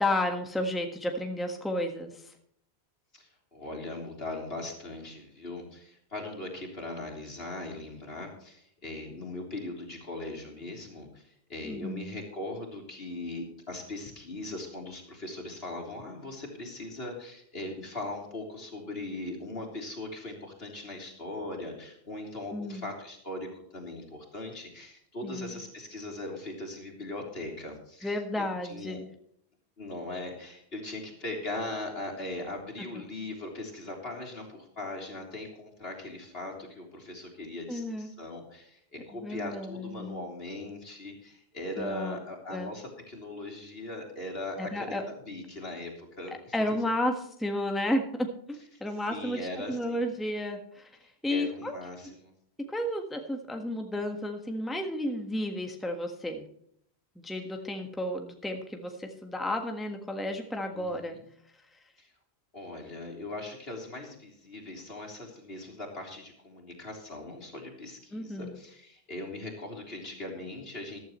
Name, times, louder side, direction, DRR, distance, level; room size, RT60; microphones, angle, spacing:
voice 1, 0.0-2.3 11.6-12.1 22.5-22.8 25.2-25.6 28.0-29.1 37.7-38.1 39.2-40.2 41.8-42.2 42.5-42.7 44.6-45.0 46.5-50.9 51.2-51.7 52.7-56.4 57.1-61.2 68.1-68.6, left 1 dB, ahead, 4 dB, 1.5 m, -32 dB
voice 2, 3.1-11.2 11.5-29.0 29.8-46.5 49.1-50.1 51.3-52.3 60.7-61.2 62.0-62.1 62.5-71.0, left 2 dB, 65° left, 0 dB, 3.8 m, -40 dB
14.5 x 13.0 x 3.1 m, 0.69 s
omnidirectional pair, 1.1 m